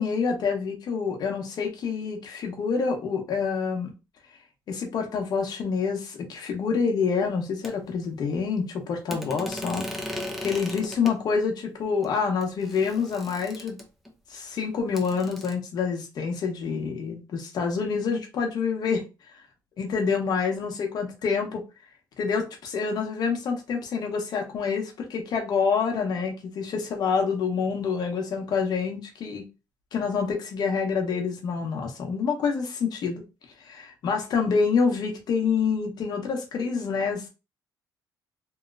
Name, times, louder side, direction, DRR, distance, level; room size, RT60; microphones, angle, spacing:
voice 1, 0.0-3.9 4.7-13.8 14.3-19.0 19.8-21.6 22.2-29.4 29.9-33.2 33.6-33.8 34.0-37.2, left 5 dB, 60° left, 0.9 m, -27 dB
sound 1, 7.6-7.7 9.1-11.2 12.0-12.1 12.4-14.1 14.9-15.5, left 1 dB, ahead, 0.7 m, -37 dB
3.1 x 2.8 x 2.4 m
cardioid pair, 145°, 8 cm